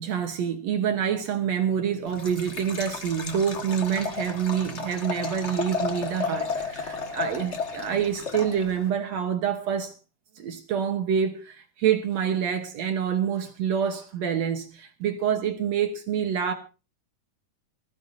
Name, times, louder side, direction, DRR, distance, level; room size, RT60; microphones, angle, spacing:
voice 1, 0.0-9.9 10.4-16.5, right 8 dB, 65° right, 2.0 m, -27 dB
Liquid, 2.1-8.9, left 5 dB, 40° left, 1.0 m, -33 dB
20.5 x 15.0 x 2.7 m
omnidirectional pair, 3.7 m